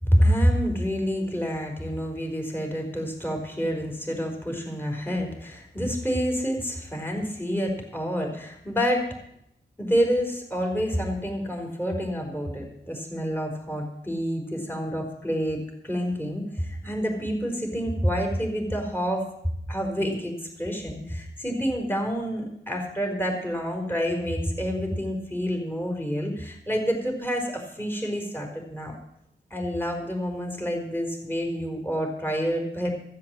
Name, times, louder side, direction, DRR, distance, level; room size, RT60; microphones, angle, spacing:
voice 1, 0.0-9.1 9.8-19.3 19.7-29.0 29.5-32.9, equal, 10° left, 2 dB, 4.5 m, -28 dB
14.5 x 7.6 x 7.5 m, 0.78 s
cardioid pair, 50°, 20 cm